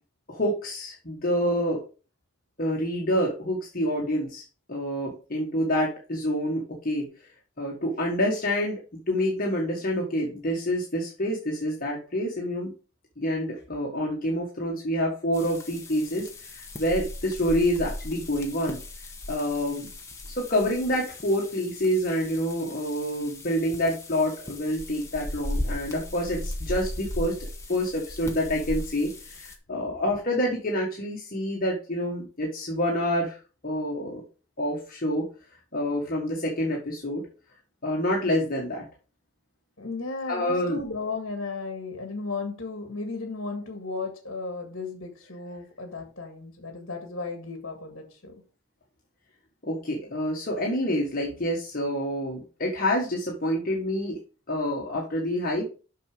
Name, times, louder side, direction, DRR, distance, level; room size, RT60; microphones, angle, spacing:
voice 1, 0.3-1.8 2.6-4.4 4.7-7.1 7.6-8.8 9.1-12.7 13.2-18.8 19.3-19.9 20.3-27.3 27.7-33.4 33.6-34.2 34.6-35.2 35.7-37.2 37.8-38.8 40.3-40.8 49.6-54.2 54.5-55.7, equal, 40° left, -3 dB, 1.7 m, -27 dB
sound 1, 15.3-29.6, left 1 dB, 15° left, 1.2 m, -37 dB
voice 2, 39.8-48.4, left 3 dB, 60° left, 3 dB, 1.9 m, -35 dB
6.7 x 6.1 x 5.1 m, 0.35 s
head